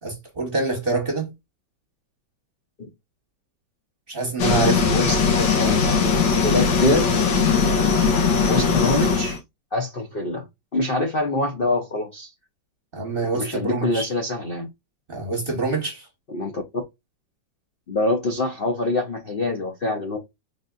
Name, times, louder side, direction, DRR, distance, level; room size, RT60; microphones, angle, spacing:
voice 1, 0.0-1.3 4.1-4.9 12.9-14.1 15.1-16.1, right 3 dB, 35° right, 1.1 m, -26 dB
sound 1, 4.4-9.4, left 5 dB, 85° left, 1.8 m, -20 dB
voice 2, 4.9-5.8 6.3-7.2 8.5-9.4 9.7-10.4 10.7-12.3 13.3-14.7 16.3-16.6 17.9-20.2, left 2 dB, 45° left, 0.8 m, -25 dB
4.1 x 3.5 x 2.3 m
omnidirectional pair, 2.0 m